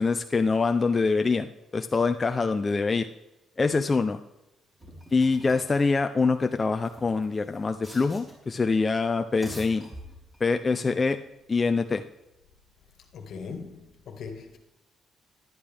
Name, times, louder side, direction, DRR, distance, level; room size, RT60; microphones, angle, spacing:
voice 1, 0.0-3.1 3.6-4.2 5.1-9.9 10.4-11.2 11.5-12.0, left 4 dB, 30° left, 0.5 m, -24 dB
sound 1, 4.8-5.8 6.7-8.5 9.2-10.5, equal, 10° right, 4.2 m, -46 dB
voice 2, 13.1-14.6, left 5 dB, 70° left, 1.6 m, -40 dB
11.5 x 11.0 x 3.4 m
cardioid pair, 90°, 0 cm